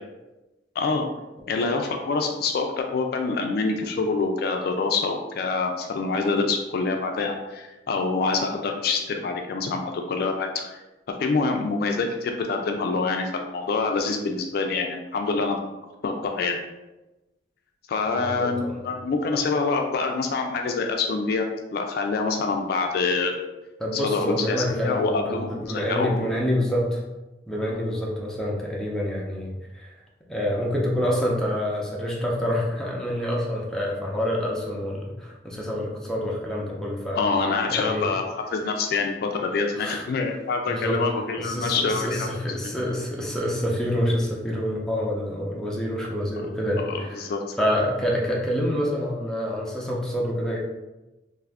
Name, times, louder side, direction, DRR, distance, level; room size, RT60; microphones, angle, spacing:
voice 1, 0.8-1.1 1.5-10.8 11.2-15.6 16.0-16.6 17.9-21.5 21.7-23.3 23.9-26.1 37.2-38.2 38.5-42.4 42.6-42.7 46.8-47.4, left 4 dB, 60° left, 3 dB, 0.3 m, -26 dB
voice 2, 18.2-18.8 23.8-27.0 27.5-29.9 30.3-37.3 37.7-38.2 39.8-40.1 40.7-41.0 41.4-47.3 47.6-50.6, equal, 5° left, -4 dB, 0.5 m, -27 dB
2.6 x 2.4 x 3.3 m, 1.1 s
head